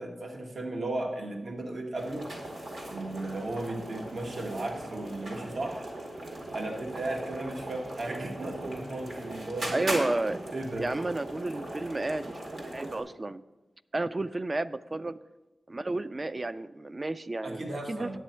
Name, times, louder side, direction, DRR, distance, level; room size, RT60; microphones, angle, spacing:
voice 1, 0.0-2.3 2.9-5.9 6.5-9.9 10.5-10.9 17.4-18.2, right 2 dB, 60° right, 1 dB, 1.2 m, -35 dB
sound 1, 1.9-13.0, right 1 dB, 85° right, 2.1 m, -39 dB
voice 2, 9.7-10.4 10.8-13.4 13.9-15.2 15.7-17.6 17.9-18.2, right 2 dB, 30° right, 13 dB, 0.3 m, -32 dB
9.9 x 8.3 x 4.3 m, 1.1 s
wide cardioid pair, 105°, 0 cm